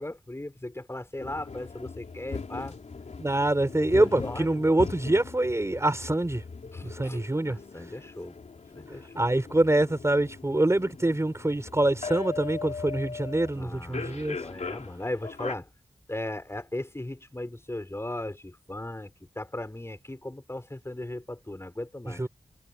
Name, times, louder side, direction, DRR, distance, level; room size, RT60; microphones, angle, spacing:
voice 1, 0.0-2.8 4.0-4.8 6.7-7.2 7.5-8.4 8.7-9.3 13.5-15.7 16.1-22.2, left 1 dB, 20° left, 7.2 m, -37 dB
sound 1, 1.2-15.5, left 4 dB, 65° left, 3.9 m, -40 dB
voice 2, 3.2-6.4 6.8-7.6 9.1-14.4 22.1-22.3, right 1 dB, 20° right, 4.6 m, -25 dB
cardioid pair, 60°, 13 cm